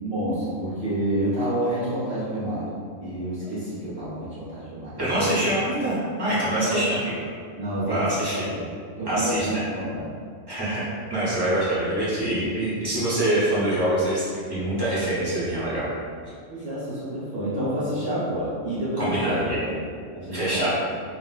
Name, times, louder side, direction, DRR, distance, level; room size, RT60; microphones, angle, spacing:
voice 1, 0.0-5.5 6.6-6.8 7.5-8.7 9.0-10.1 12.2-12.3 16.5-19.4 19.8-20.7, right 1 dB, 50° right, -12 dB, 1.0 m, -29 dB
voice 2, 5.0-7.1 7.8-8.5 9.1-9.6 10.5-10.8 11.1-15.9 19.0-19.6 20.3-20.7, right 1 dB, 20° right, -10 dB, 0.9 m, -25 dB
4.0 x 2.1 x 2.2 m, 2.2 s
omnidirectional pair, 1.3 m